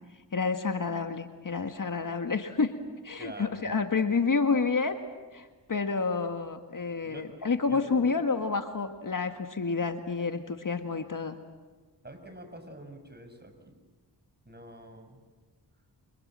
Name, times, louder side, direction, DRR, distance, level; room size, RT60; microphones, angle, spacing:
voice 1, 0.3-2.7 3.0-5.0 5.3-11.4, left 4 dB, 50° left, 7 dB, 1.9 m, -29 dB
voice 2, 3.2-3.7 7.0-7.4 7.7-8.1 12.0-13.8 14.4-15.2, right 1 dB, 25° right, 6 dB, 6.5 m, -46 dB
28.5 x 25.5 x 7.7 m, 1.3 s
cardioid pair, 55°, 42 cm